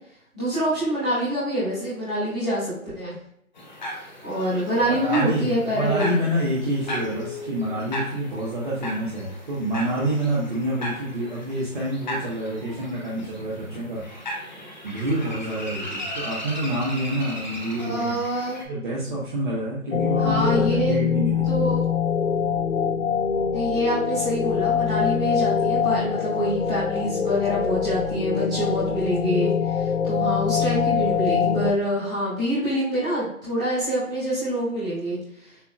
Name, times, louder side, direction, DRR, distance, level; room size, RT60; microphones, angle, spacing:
voice 1, 0.3-3.1 4.2-6.2 17.8-18.6 20.2-20.9 21.5-21.8 23.5-35.2, equal, 5° right, -13 dB, 0.8 m, -26 dB
sound 1, 3.5-18.6, left 1 dB, 30° left, 0.9 m, -36 dB
voice 2, 5.0-14.0 14.8-18.1 18.7-21.6, right 1 dB, 35° right, -7 dB, 1.3 m, -27 dB
sound 2, 19.9-31.7, left 7 dB, 55° left, 0.5 m, -24 dB
6.8 x 2.8 x 2.4 m, 0.72 s
figure-of-eight pair, 160°, 42 cm